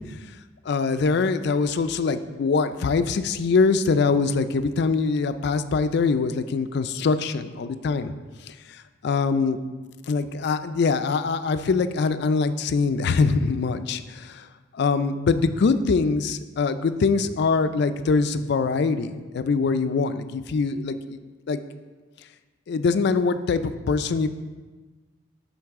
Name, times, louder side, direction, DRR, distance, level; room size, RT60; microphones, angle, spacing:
voice 1, 0.7-8.1 8.4-9.6 10.1-14.5 14.7-21.2 21.5-21.6 22.7-24.3, left 4 dB, 55° left, 11 dB, 0.3 m, -23 dB
11.5 x 3.9 x 3.6 m, 1.3 s
head